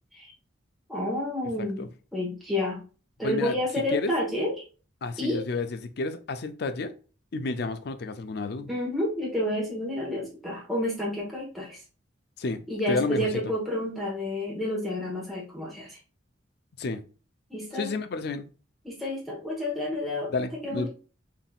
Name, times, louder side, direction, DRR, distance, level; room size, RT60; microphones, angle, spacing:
voice 1, 0.9-1.8 2.1-2.8 3.2-4.5 5.2-5.4 8.7-11.8 12.7-16.0 17.5-17.9 18.8-20.3 20.6-20.9, left 1 dB, ahead, 1.1 m, -30 dB
voice 2, 3.2-3.6 3.9-4.1 5.0-6.9 7.3-8.7 12.4-13.4 16.8-17.0 17.7-18.5 20.3-20.9, left 3 dB, 55° left, 0.4 m, -31 dB
3.8 x 3.7 x 2.3 m
head